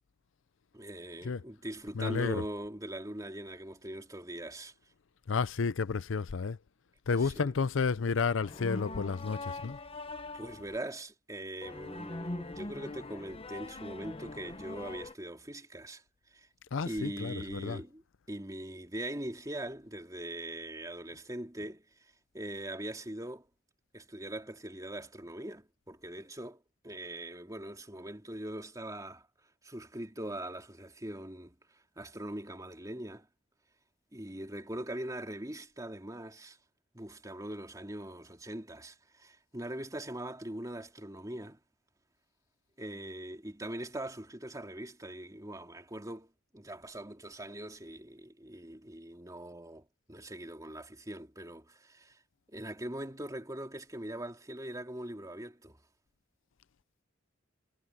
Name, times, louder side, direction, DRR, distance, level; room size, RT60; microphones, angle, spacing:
voice 1, 0.7-4.7 7.2-7.5 10.3-16.0 16.3-16.5 16.8-18.0 18.3-21.8 22.3-23.5 23.9-29.3 29.6-31.6 32.0-33.3 34.1-36.6 36.9-41.6 42.8-52.2 52.5-55.8, right 1 dB, 20° right, 2.9 m, -41 dB
voice 2, 1.9-2.4 5.3-6.6 7.1-9.8 16.7-17.8, left 5 dB, 75° left, 0.5 m, -31 dB
sound 1, 8.4-10.8 11.6-15.1, left 2 dB, 30° left, 1.0 m, -42 dB
head